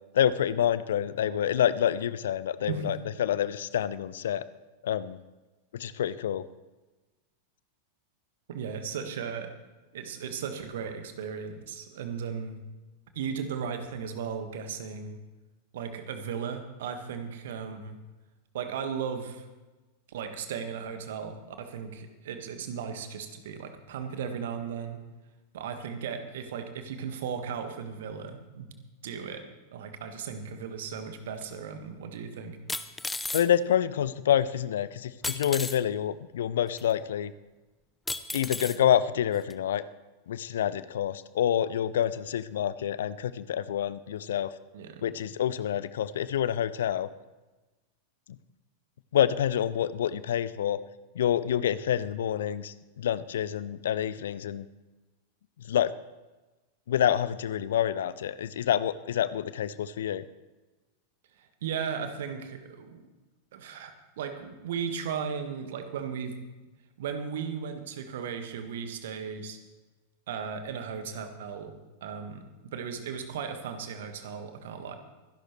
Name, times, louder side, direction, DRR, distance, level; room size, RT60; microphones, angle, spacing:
voice 1, 0.1-4.4 4.8-5.2 5.7-6.4 33.3-37.3 38.3-39.8 40.3-44.5 45.0-47.1 49.1-50.8 51.1-54.6 55.7-55.9 56.9-60.2, left 10 dB, 60° left, 17 dB, 0.5 m, -27 dB
voice 2, 2.6-2.9 8.5-9.5 9.9-12.6 13.1-15.2 15.7-18.0 18.5-19.5 20.1-25.0 25.5-28.7 29.0-32.6 44.7-45.1 61.4-63.1 63.5-66.4 67.0-69.6 70.3-74.9, right 6 dB, 55° right, 7 dB, 1.6 m, -36 dB
sound 1, 31.4-31.5 32.7-33.5 35.2-35.8 36.8-36.9 38.1-38.8 39.5-39.6, left 2 dB, 10° left, 0.7 m, -34 dB
24.0 x 11.5 x 3.2 m, 1.2 s
figure-of-eight pair, 90°, 0 cm